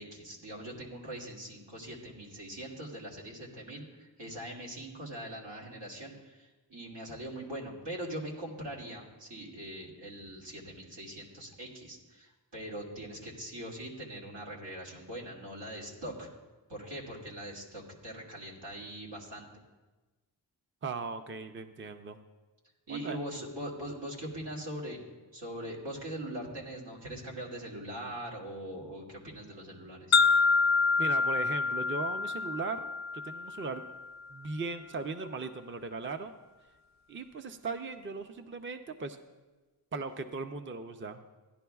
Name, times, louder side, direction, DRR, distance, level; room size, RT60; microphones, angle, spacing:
voice 1, 0.0-16.3 16.7-19.5 22.9-25.0 25.3-30.2, right 1 dB, 85° right, -4 dB, 2.3 m, -42 dB
voice 2, 20.8-22.2 22.9-23.2 30.3-30.5 31.0-32.9 33.2-33.8 34.3-36.3 37.1-39.2 39.9-41.3, right 4 dB, 30° right, 8 dB, 0.5 m, -38 dB
sound 1, 30.1-34.1, left 4 dB, 45° left, 0.4 m, -27 dB
17.0 x 11.0 x 2.3 m, 1.2 s
wide cardioid pair, 95°, 42 cm